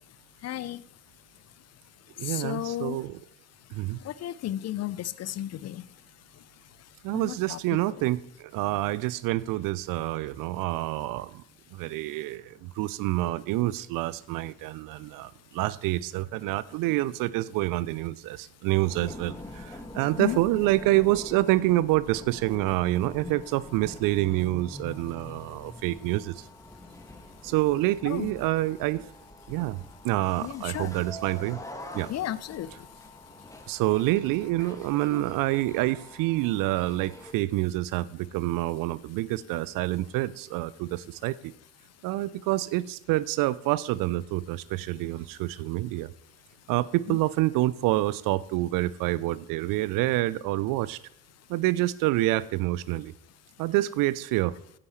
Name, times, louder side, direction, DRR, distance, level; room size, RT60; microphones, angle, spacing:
voice 1, 0.4-0.8 2.2-3.0 4.0-5.8 7.1-8.0 20.2-20.4 28.0-28.3 30.4-30.9 32.1-32.7 47.1-47.2, left 13 dB, 40° left, 17 dB, 0.6 m, -33 dB
voice 2, 2.2-3.2 3.7-4.0 7.0-11.4 11.7-26.5 27.4-29.0 29.5-29.8 30.0-31.6 31.9-32.1 33.7-41.5 42.0-46.1 46.7-51.0 51.5-53.1 53.6-54.6, right 17 dB, 50° right, 20 dB, 0.5 m, -27 dB
sound 1, 18.8-37.3, left 1 dB, 10° left, 1.9 m, -44 dB
16.0 x 9.9 x 3.2 m, 0.77 s
figure-of-eight pair, 50°, 42 cm